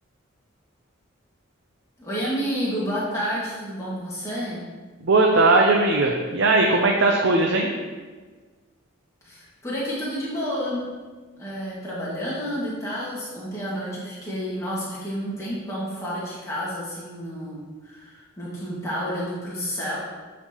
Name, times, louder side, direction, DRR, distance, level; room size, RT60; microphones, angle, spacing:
voice 1, 2.0-4.6 9.2-10.9 11.4-20.0, equal, 15° left, -8 dB, 1.8 m, -30 dB
voice 2, 5.0-7.7, right 2 dB, 60° right, 1 dB, 0.6 m, -19 dB
9.7 x 4.2 x 3.0 m, 1.4 s
head